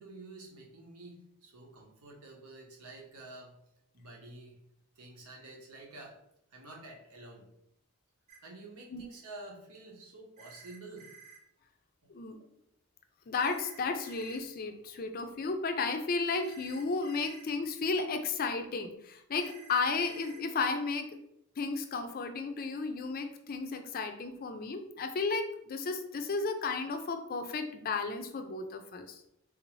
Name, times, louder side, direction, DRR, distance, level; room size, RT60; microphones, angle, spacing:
voice 1, 0.0-3.6 3.9-4.7 5.0-6.2 6.5-7.5 8.4-11.2 12.0-12.1, right 2 dB, 85° right, -1 dB, 1.0 m, -49 dB
sound 1, 8.3-8.4 10.4-11.4 13.4-14.4 16.4-17.5 19.4-20.4, right 6 dB, 30° right, 0.4 m, -53 dB
voice 2, 13.3-21.1 21.6-29.2, left 4 dB, 40° left, 7 dB, 0.4 m, -33 dB
3.6 x 2.6 x 3.1 m, 0.77 s
head